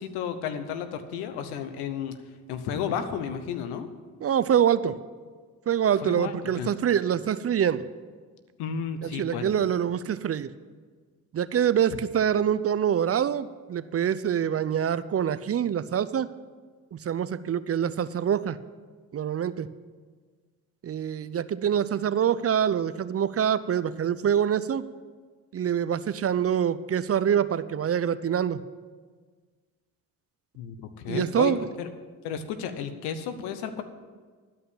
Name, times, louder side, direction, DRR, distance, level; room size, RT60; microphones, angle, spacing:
voice 1, 0.0-2.2 2.5-3.9 6.0-6.7 8.6-9.5 30.6-31.9 32.2-33.8, left 7 dB, 90° left, 9 dB, 1.0 m, -33 dB
voice 2, 4.2-5.0 5.7-7.9 9.0-10.5 11.3-16.3 16.9-18.6 19.1-19.7 20.8-24.8 25.5-28.6 31.1-31.6, right 9 dB, 40° right, 14 dB, 0.5 m, -25 dB
12.0 x 5.6 x 8.4 m, 1.5 s
supercardioid pair, 60°, 37 cm